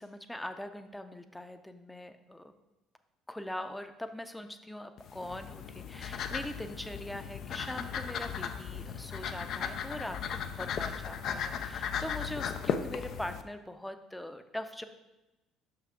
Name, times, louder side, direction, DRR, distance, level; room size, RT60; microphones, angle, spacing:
voice 1, 0.0-2.5 3.3-14.8, left 1 dB, 5° left, 9 dB, 0.6 m, -42 dB
Cachorro jadeando, 5.0-13.4, left 7 dB, 55° left, 0.5 m, -36 dB
6.4 x 5.9 x 3.7 m, 1.0 s
hypercardioid pair, 55°, 0 cm